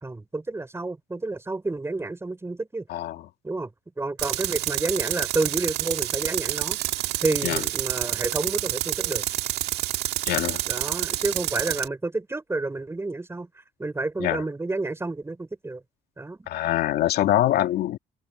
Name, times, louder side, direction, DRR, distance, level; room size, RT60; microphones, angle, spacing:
voice 1, 0.0-2.9 3.4-3.7 4.0-6.8 7.2-9.2 10.7-13.5 13.8-15.8 16.2-16.4, right 2 dB, 15° right, 5.7 m, -30 dB
voice 2, 2.9-3.3 7.4-7.6 10.3-10.6 14.2-14.4 16.5-18.0, left 13 dB, 75° left, 2.5 m, -24 dB
Tools, 4.2-11.9, right 15 dB, 85° right, 1.6 m, -28 dB
cardioid pair, 110°, 17 cm